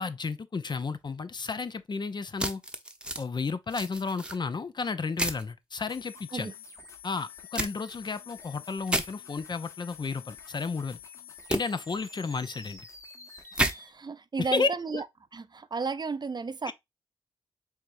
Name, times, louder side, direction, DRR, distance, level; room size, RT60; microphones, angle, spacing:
voice 1, 0.0-2.6 3.2-6.5 7.0-11.0 11.5-12.9 14.4-15.0 16.7-16.8, left 4 dB, 45° left, 0.5 m, -32 dB
sound 1, 2.4-3.2 3.7-4.4 5.2-5.4 7.5-7.7 8.9-9.1 11.5-11.6 13.5-13.7, right 1 dB, 10° right, 0.9 m, -29 dB
sound 2, 5.9-13.9, left 6 dB, 30° left, 1.4 m, -48 dB
voice 2, 13.7-15.0 15.3-16.7, right 4 dB, 40° right, 0.5 m, -33 dB
4.6 x 3.5 x 2.6 m
cardioid pair, 50°, 11 cm